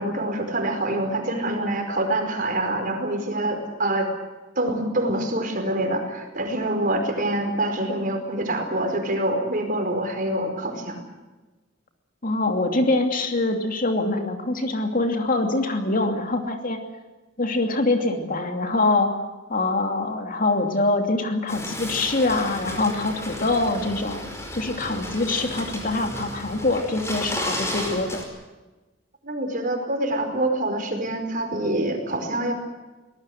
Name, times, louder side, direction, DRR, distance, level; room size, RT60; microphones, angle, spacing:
voice 1, 0.0-4.1 4.6-11.1 29.2-32.5, right 1 dB, 45° right, 5 dB, 4.8 m, -25 dB
voice 2, 12.2-16.8 17.4-24.2 24.5-28.2, left 2 dB, 45° left, 5 dB, 2.8 m, -24 dB
sound 1, 21.5-28.2, left 1 dB, 15° left, 5.1 m, -33 dB
24.0 x 19.5 x 8.0 m, 1.2 s
head